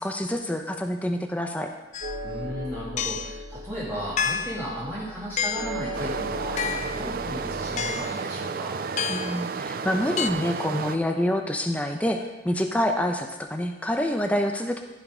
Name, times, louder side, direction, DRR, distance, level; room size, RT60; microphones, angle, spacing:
voice 1, 0.0-1.7 9.1-14.8, left 1 dB, 10° left, 3 dB, 0.7 m, -27 dB
sound 1, 1.9-2.2 3.0-3.4 4.2-4.7 5.4-5.8 6.6-7.0 7.8-8.2 9.0-9.4 10.2-10.3, left 7 dB, 40° left, 0.4 m, -29 dB
sound 2, 2.0-7.9, equal, 85° right, 1.3 m, -37 dB
voice 2, 2.2-8.8, equal, 10° right, -10 dB, 2.4 m, -35 dB
Stream, 5.9-11.0, right 5 dB, 50° right, 0.4 m, -32 dB
15.0 x 5.8 x 5.1 m, 1.0 s
head